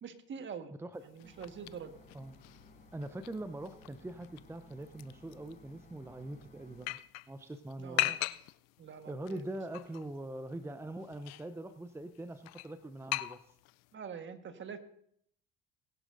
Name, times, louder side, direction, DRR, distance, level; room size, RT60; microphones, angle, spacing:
voice 1, 0.0-0.7 1.0-1.9 7.8-8.2 8.8-9.4 13.9-14.8, right 6 dB, 40° right, 8 dB, 1.5 m, -45 dB
voice 2, 0.8-1.3 2.1-2.3 2.9-7.0 7.3-8.2 9.1-13.5, right 1 dB, 10° right, 10 dB, 0.7 m, -43 dB
sound 1, 0.9-13.9, left 19 dB, 65° left, 0.6 m, -42 dB
sound 2, 1.2-6.9, left 2 dB, 25° left, 6.2 m, -58 dB
20.0 x 10.5 x 2.6 m, 0.67 s
hypercardioid pair, 70°, 29 cm